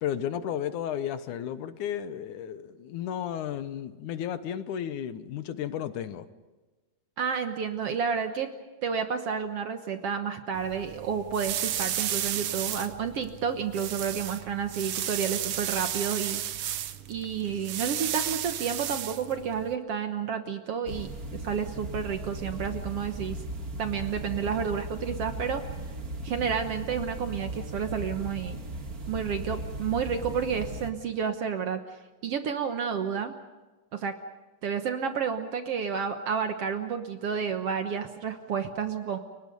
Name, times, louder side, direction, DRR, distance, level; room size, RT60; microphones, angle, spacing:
voice 1, 0.0-6.3, left 9 dB, 75° left, 12 dB, 2.4 m, -33 dB
voice 2, 7.2-8.5 8.8-16.8 17.1-23.4 23.8-25.6 26.2-28.6 29.1-31.8 32.2-33.3 33.9-34.1 34.6-39.2, right 7 dB, 60° right, 7 dB, 1.8 m, -30 dB
sound 1, 10.5-19.7, right 11 dB, 90° right, 1.2 m, -33 dB
sound 2, 20.9-30.9, right 1 dB, 35° right, 1.8 m, -37 dB
30.0 x 23.5 x 5.4 m, 1.2 s
omnidirectional pair, 3.7 m